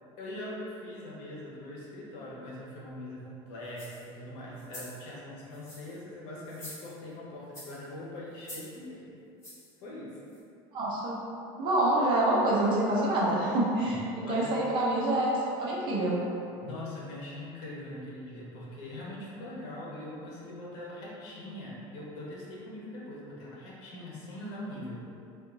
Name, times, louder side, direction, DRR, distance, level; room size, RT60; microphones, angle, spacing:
voice 1, 0.0-9.1 9.8-10.2 14.2-14.5 16.6-25.0, left 1 dB, 65° left, -5 dB, 1.0 m, -42 dB
sound 1, 3.7-4.1 4.6-5.0 5.5-6.0 6.4-7.1 7.5-7.8 8.4-8.8 9.4-9.7 10.3-10.4, left 1 dB, 25° left, 1.5 m, -46 dB
voice 2, 10.7-11.2 11.5-16.2, right 1 dB, 40° right, -5 dB, 0.8 m, -27 dB
3.7 x 2.6 x 3.8 m, 2.6 s
cardioid pair, 155°, 12 cm